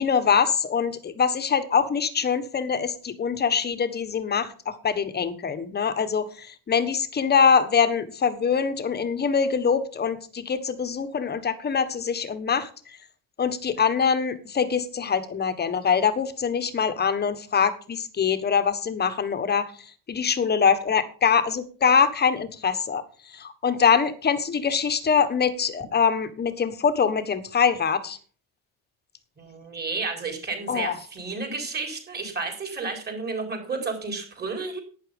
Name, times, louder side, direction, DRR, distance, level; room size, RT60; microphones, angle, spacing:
voice 1, 0.0-12.7 13.4-19.7 20.1-23.0 23.3-28.2 30.7-31.0, left 6 dB, 25° left, 11 dB, 1.4 m, -23 dB
voice 2, 29.4-34.8, right 4 dB, 25° right, 3 dB, 4.7 m, -32 dB
11.5 x 9.8 x 5.4 m, 0.40 s
cardioid pair, 140°, 37 cm